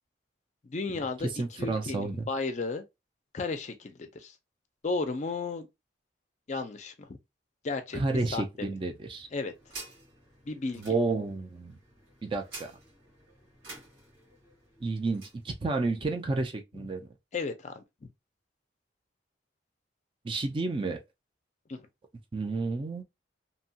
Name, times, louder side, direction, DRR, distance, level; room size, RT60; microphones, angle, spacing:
voice 1, 0.6-1.3 1.6-2.8 3.3-4.3 4.8-5.7 6.5-7.2 7.6-8.7 9.3-9.5 10.5-10.8 17.3-17.8 21.7-21.8, left 3 dB, 40° left, 0.4 m, -34 dB
voice 2, 1.2-2.3 7.9-9.3 10.8-11.8 12.2-12.7 14.8-17.1 20.2-21.0 22.3-23.0, right 3 dB, 25° right, 0.3 m, -31 dB
sound 1, 8.9-15.4, right 3 dB, 80° right, 1.4 m, -50 dB
2.8 x 2.2 x 2.7 m
head